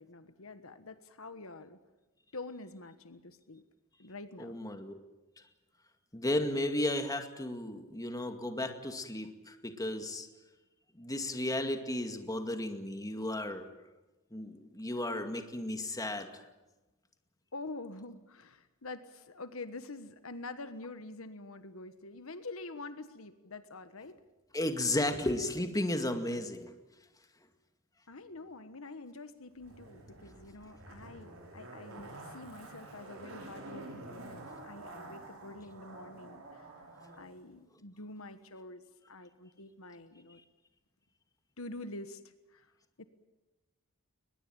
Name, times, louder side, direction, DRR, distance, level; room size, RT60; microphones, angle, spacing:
voice 1, 0.0-1.8 2.3-3.6 4.0-4.6 17.5-24.2 28.1-36.7 37.2-40.4 41.6-42.2 42.5-42.7 43.0-43.1, left 2 dB, 70° left, 11 dB, 1.4 m, -46 dB
voice 2, 4.4-4.9 6.1-10.3 11.0-13.7 14.3-16.3 24.5-26.7 32.0-32.1, left 1 dB, 15° left, 6 dB, 2.2 m, -34 dB
Zipper (clothing), 29.6-37.2 37.5-37.6, right 2 dB, 65° right, 6.6 m, -49 dB
22.0 x 21.0 x 9.1 m, 1.1 s
head